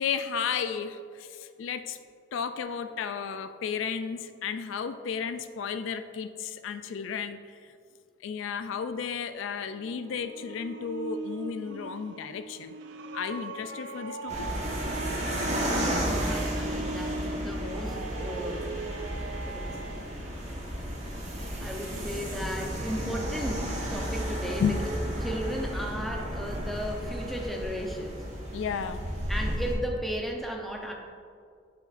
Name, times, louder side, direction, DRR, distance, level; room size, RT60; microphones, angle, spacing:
voice 1, 0.0-2.0 2.3-7.4 8.2-12.7 13.1-14.3 24.6-24.8 28.5-29.0, left 6 dB, 85° left, 10 dB, 0.3 m, -33 dB
sound 1, 9.6-20.1, right 3 dB, 75° right, 0.5 m, -39 dB
sound 2, 14.3-29.7, equal, 35° right, 1.2 m, -33 dB
voice 2, 15.4-18.8 19.4-19.8 21.6-24.9 25.2-28.2 29.3-30.9, equal, ahead, 0 dB, 0.6 m, -35 dB
7.8 x 6.9 x 2.5 m, 2.3 s
head